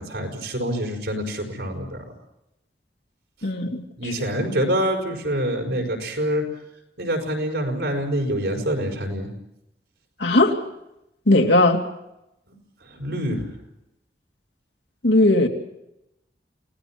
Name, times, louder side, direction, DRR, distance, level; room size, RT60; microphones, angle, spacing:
voice 1, 0.0-2.0 4.0-6.4 7.0-9.3 12.8-13.5, equal, 80° right, 3 dB, 5.5 m, -26 dB
voice 2, 3.4-3.8 10.2-10.6 11.3-11.8 15.0-15.5, left 2 dB, 90° left, 2 dB, 2.7 m, -17 dB
28.5 x 18.5 x 6.1 m, 0.86 s
head